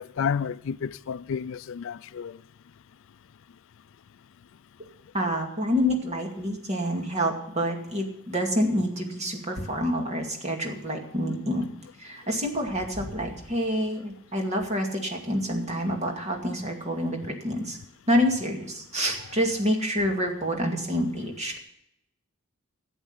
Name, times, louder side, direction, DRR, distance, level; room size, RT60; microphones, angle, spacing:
voice 1, 0.0-2.4, left 7 dB, 65° left, 0.4 m, -31 dB
voice 2, 5.1-11.7 12.0-17.8 18.1-21.6, equal, 35° right, 2.2 m, -27 dB
12.0 x 8.0 x 8.1 m
head